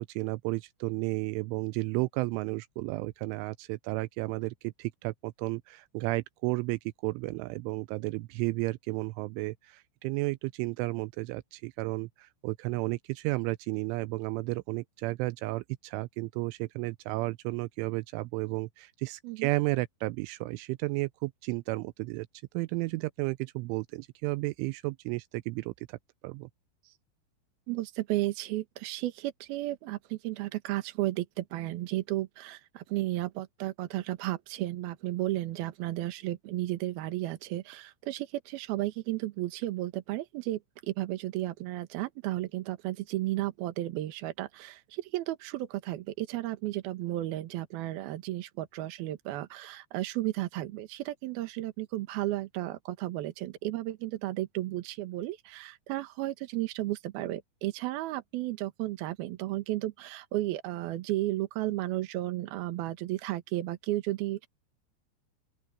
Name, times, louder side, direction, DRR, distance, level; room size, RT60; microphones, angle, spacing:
voice 1, 0.0-22.3 22.5-26.0 26.2-26.5, right 22 dB, 85° right, 3.0 m, -33 dB
voice 2, 27.7-64.5, right 16 dB, 65° right, 2.8 m, -33 dB
open air
omnidirectional pair, 5.6 m